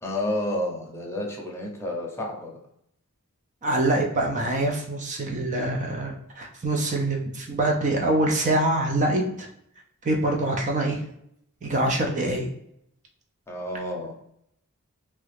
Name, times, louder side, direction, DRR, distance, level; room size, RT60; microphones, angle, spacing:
voice 1, 0.0-2.6 13.5-14.1, left 1 dB, 10° left, -2 dB, 0.7 m, -30 dB
voice 2, 3.6-9.5 10.1-11.0 11.6-12.5, right 1 dB, 35° right, 2 dB, 0.4 m, -25 dB
2.9 x 2.4 x 3.2 m, 0.74 s
head